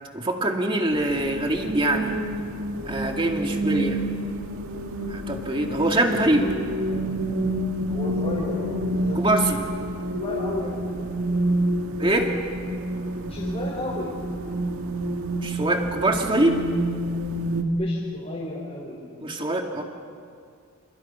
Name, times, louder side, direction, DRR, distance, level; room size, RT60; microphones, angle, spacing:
voice 1, 0.1-2.2 2.8-4.0 5.1-6.5 9.1-9.6 12.0-12.3 15.4-16.6 19.2-19.8, right 1 dB, 25° right, 2 dB, 2.4 m, -23 dB
sound 1, 0.9-17.6, right 1 dB, 90° right, 2.0 m, -28 dB
voice 2, 7.9-9.5 10.1-10.8 13.2-14.2 17.7-19.8, left 1 dB, 30° left, -7 dB, 5.6 m, -34 dB
29.5 x 29.0 x 5.8 m, 2.2 s
head